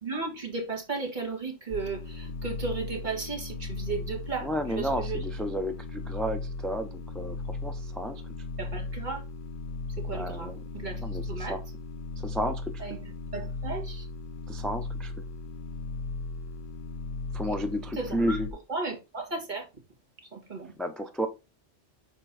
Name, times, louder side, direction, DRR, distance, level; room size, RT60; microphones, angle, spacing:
voice 1, 0.0-4.5 4.8-5.2 8.6-9.2 10.0-11.6 12.8-13.0 13.3-14.1 18.0-18.4 18.7-19.7 20.3-20.7, right 4 dB, 40° right, 1.9 m, -35 dB
sound 1, 1.7-18.5, left 3 dB, 50° left, 0.7 m, -37 dB
voice 2, 4.4-8.2 10.1-10.6 11.0-11.6 12.2-13.0 14.5-15.1 17.3-18.5 20.8-21.3, equal, ahead, 0.4 m, -32 dB
6.6 x 4.5 x 4.1 m
omnidirectional pair, 1.2 m